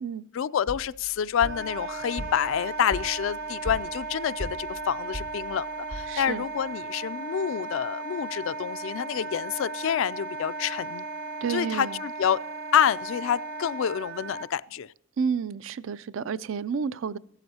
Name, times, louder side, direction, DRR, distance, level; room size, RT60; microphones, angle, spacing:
voice 1, 0.3-11.0 11.5-12.4 12.7-14.9, left 8 dB, 65° left, 0.3 m, -28 dB
sound 1, 0.7-6.5, equal, 85° right, 2.0 m, -40 dB
Wind instrument woodwind instrument, 1.4-14.5, right 3 dB, 45° right, 0.8 m, -36 dB
voice 2, 6.1-6.4 11.4-12.0 15.2-17.2, right 6 dB, 60° right, 0.4 m, -30 dB
15.0 x 12.0 x 2.8 m
head